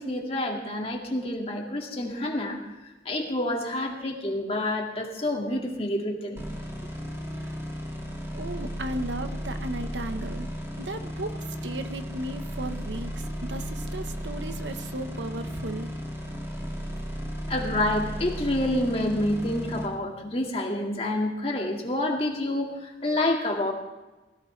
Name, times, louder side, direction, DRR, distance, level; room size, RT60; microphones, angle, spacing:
voice 1, 0.0-6.4 17.5-23.7, left 1 dB, 30° left, 1 dB, 2.1 m, -28 dB
sound 1, 6.4-19.9, equal, 15° right, 2.2 m, -35 dB
voice 2, 8.3-10.5 10.8-11.4 11.6-15.9, right 1 dB, 80° right, 8 dB, 1.2 m, -35 dB
20.5 x 17.0 x 3.3 m, 1.1 s
head